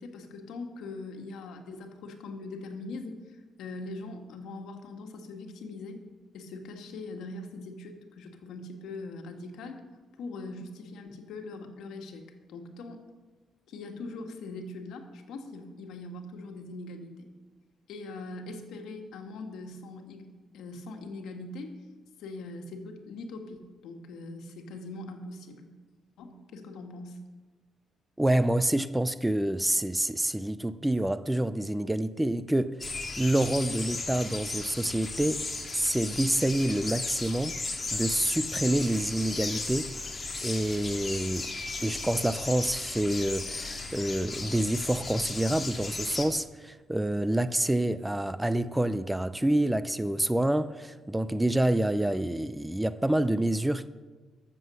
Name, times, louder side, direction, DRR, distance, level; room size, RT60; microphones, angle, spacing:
voice 1, 0.0-6.0 6.3-9.8 10.2-13.0 13.7-17.3 17.9-21.8 22.2-25.7 26.2-27.2, left 2 dB, 80° left, 1.7 m, -41 dB
voice 2, 28.2-32.8 33.2-35.4 35.7-37.6 37.9-39.9 40.4-41.5 41.8-53.9, right 1 dB, 10° right, 0.5 m, -27 dB
sound 1, 32.8-46.3, left 3 dB, 25° left, 2.1 m, -35 dB
13.5 x 7.6 x 6.4 m
cardioid pair, 90°, 0 cm